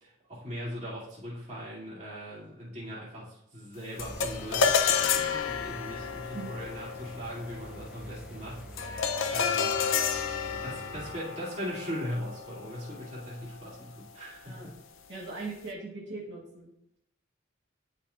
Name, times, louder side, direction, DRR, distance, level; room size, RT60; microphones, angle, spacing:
voice 1, 0.0-9.8 10.5-14.7, equal, 35° right, -7 dB, 2.4 m, -40 dB
sound 1, 4.0-13.5, left 6 dB, 80° left, 0.5 m, -31 dB
Engine, 4.0-11.1, right 1 dB, 5° right, 0.4 m, -46 dB
voice 2, 15.1-16.7, right 3 dB, 60° right, -6 dB, 1.4 m, -40 dB
11.0 x 4.2 x 2.4 m, 0.79 s
head